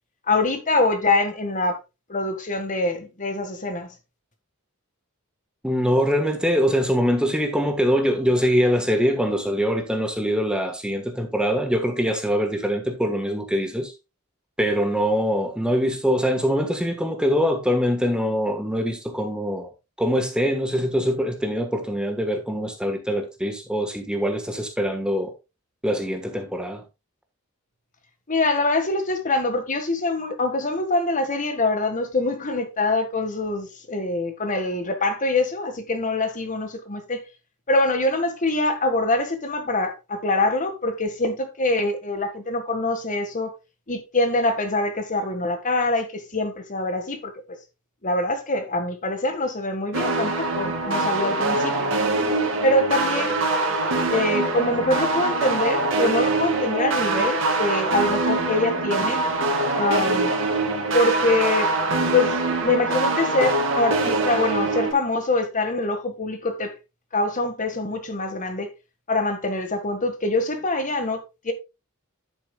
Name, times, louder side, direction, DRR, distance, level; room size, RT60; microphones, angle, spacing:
voice 1, 0.3-1.8 2.1-3.9 28.3-37.2 37.7-43.5 43.9-47.6 48.0-51.9 52.6-53.3 54.1-59.2 59.7-60.3 60.9-61.7 62.1-66.7 67.1-68.7 69.1-71.5, left 2 dB, 35° left, 1.6 m, -24 dB
voice 2, 5.6-13.9 14.6-19.7 20.0-25.3 25.8-26.8, equal, 5° right, 1.2 m, -23 dB
sound 1, 49.9-64.9, right 2 dB, 60° right, 2.4 m, -23 dB
10.5 x 8.8 x 2.3 m
head